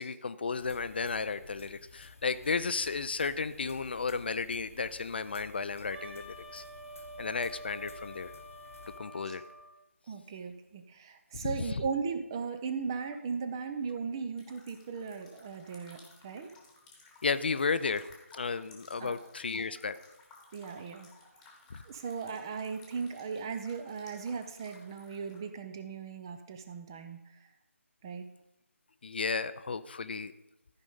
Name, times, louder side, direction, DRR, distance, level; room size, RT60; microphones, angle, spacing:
voice 1, 0.0-6.6 7.2-8.3 9.0-9.4 11.3-11.5 17.2-18.0 18.3-19.9 29.0-30.3, left 5 dB, 40° left, 13 dB, 0.4 m, -33 dB
sound 1, 0.5-9.0, left 4 dB, 60° left, 0.9 m, -54 dB
Wind instrument woodwind instrument, 5.9-9.7, right 1 dB, 40° right, 2.2 m, -47 dB
voice 2, 10.1-16.5 19.0-19.3 19.6-19.7 20.5-21.1 21.8-27.2 28.0-28.3, right 5 dB, 15° right, 8 dB, 0.5 m, -37 dB
sound 2, 14.4-25.4, left 4 dB, 5° left, 1.2 m, -58 dB
13.5 x 5.1 x 5.4 m, 0.89 s
figure-of-eight pair, 160°, 8 cm